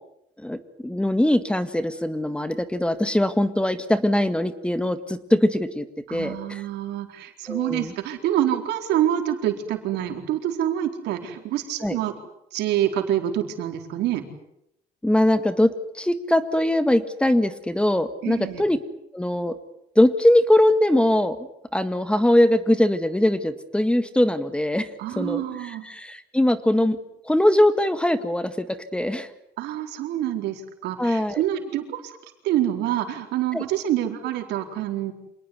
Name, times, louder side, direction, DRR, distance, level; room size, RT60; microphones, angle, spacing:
voice 1, 0.4-6.6 7.5-7.9 11.8-12.0 15.0-18.8 19.1-19.6 20.0-21.5 21.7-24.9 25.2-25.4 25.8-27.0 27.2-29.3 31.0-31.4 33.5-33.6, left 1 dB, 5° left, 12 dB, 1.8 m, -21 dB
voice 2, 6.1-12.1 12.5-14.2 18.2-18.6 25.0-25.9 29.6-32.2 32.4-35.1, right 11 dB, 85° right, 5 dB, 4.3 m, -26 dB
27.5 x 19.5 x 9.7 m, 0.80 s
cardioid pair, 110°, 17 cm